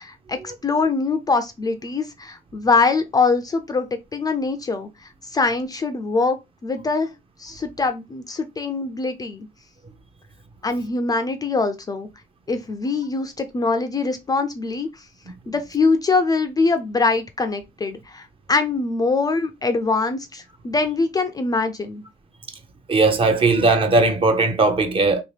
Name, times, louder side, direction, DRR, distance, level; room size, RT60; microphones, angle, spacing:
voice 1, 0.0-7.1 7.4-9.5 10.6-12.1 12.5-15.1 15.5-22.0, left 3 dB, 20° left, 0.4 m, -23 dB
voice 2, 22.9-25.2, right 3 dB, 30° right, 0.6 m, -18 dB
2.9 x 2.8 x 3.2 m
cardioid pair, 110°, 17 cm